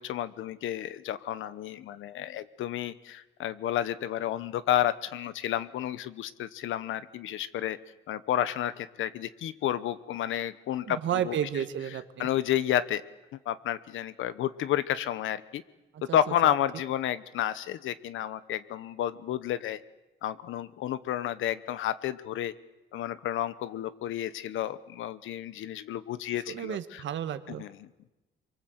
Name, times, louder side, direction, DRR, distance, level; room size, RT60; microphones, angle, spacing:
voice 1, 0.0-7.8 8.1-11.6 12.2-13.0 13.4-15.6 16.1-19.8 20.2-22.5 22.9-27.0 27.5-27.8, left 11 dB, 80° left, 15 dB, 1.1 m, -31 dB
voice 2, 10.8-12.3 16.1-16.2 16.4-16.5 26.5-27.6, right 10 dB, 70° right, 10 dB, 1.7 m, -32 dB
25.5 x 23.5 x 8.0 m, 1.1 s
cardioid pair, 90°, 20 cm